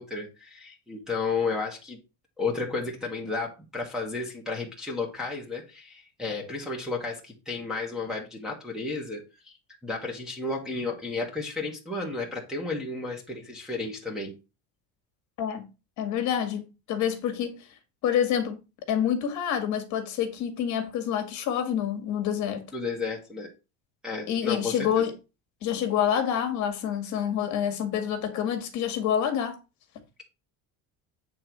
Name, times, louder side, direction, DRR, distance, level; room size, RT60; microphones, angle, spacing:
voice 1, 0.0-2.0 2.4-9.6 9.8-14.3 22.7-23.5 24.0-25.0, left 3 dB, ahead, 1.4 m, -32 dB
voice 2, 16.0-17.6 18.0-18.6 18.9-22.6 24.3-25.1 25.6-29.6, left 9 dB, 45° left, 1.7 m, -27 dB
8.7 x 3.8 x 6.0 m
cardioid pair, 180°, 40 cm